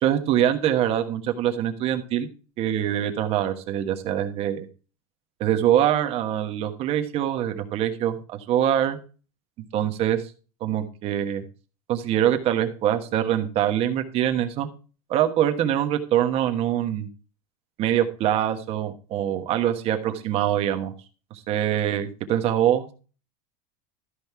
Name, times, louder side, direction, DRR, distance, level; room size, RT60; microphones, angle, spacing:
voice 1, 0.0-2.3 2.6-4.7 5.4-9.0 9.7-10.3 10.6-11.4 11.9-14.7 15.1-17.1 17.8-20.9 21.5-22.9, right 11 dB, 30° right, 7 dB, 1.2 m, -24 dB
13.0 x 5.3 x 4.6 m, 0.35 s
supercardioid pair, 165°, 20 cm